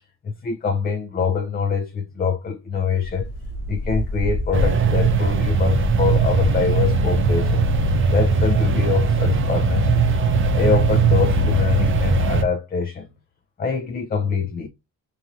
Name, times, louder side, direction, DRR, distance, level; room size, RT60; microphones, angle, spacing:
voice 1, 0.2-3.3 3.7-7.7 8.1-13.1 13.6-14.7, left 6 dB, 30° left, 0.5 m, -24 dB
sound 1, 3.0-12.3, equal, 55° left, 1.2 m, -32 dB
sound 2, 4.5-12.4, right 4 dB, 40° right, 0.6 m, -19 dB
3.1 x 2.5 x 2.5 m
cardioid pair, 90°, 30 cm